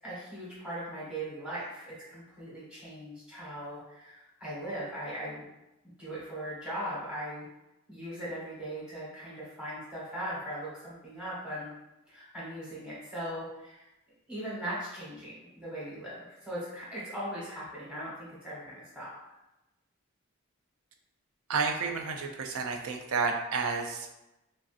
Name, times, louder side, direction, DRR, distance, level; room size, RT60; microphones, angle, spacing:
voice 1, 0.0-5.4 6.0-7.5 7.9-11.7 12.1-13.9 14.3-19.1, right 1 dB, 5° right, -8 dB, 1.1 m, -39 dB
voice 2, 21.5-24.1, right 4 dB, 85° right, 3 dB, 0.4 m, -31 dB
3.2 x 2.5 x 2.4 m, 0.94 s
head